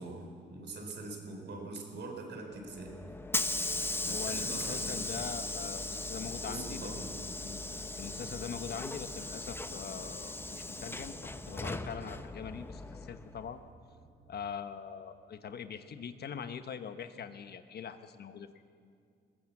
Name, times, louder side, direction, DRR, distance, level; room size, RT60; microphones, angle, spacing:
voice 1, 0.0-3.0 4.0-5.2 6.2-7.1, right 2 dB, 60° right, 3 dB, 4.3 m, -43 dB
Hiss / Sliding door, 2.6-13.5, left 2 dB, 10° left, 0.9 m, -38 dB
voice 2, 4.0-6.9 7.4-11.1 11.5-13.6 14.3-18.5, left 7 dB, 55° left, 10 dB, 1.2 m, -42 dB
sound 1, 7.1-14.6, right 3 dB, 85° right, 2.7 m, -59 dB
20.5 x 17.0 x 7.3 m, 2.3 s
cardioid pair, 90°, 20 cm